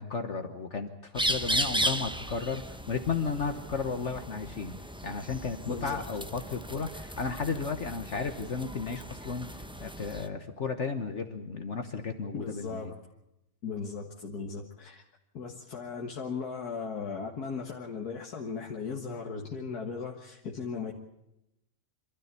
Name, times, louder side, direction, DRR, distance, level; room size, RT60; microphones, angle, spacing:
voice 1, 0.0-4.7 5.0-12.9, left 5 dB, 50° left, 7 dB, 1.4 m, -34 dB
sound 1, 1.1-10.3, equal, 5° right, 0.7 m, -35 dB
voice 2, 5.6-6.0 12.3-13.0 13.6-15.0 15.3-20.9, left 5 dB, 85° left, 1 dB, 2.1 m, -37 dB
26.5 x 13.0 x 8.3 m, 0.89 s
omnidirectional pair, 1.6 m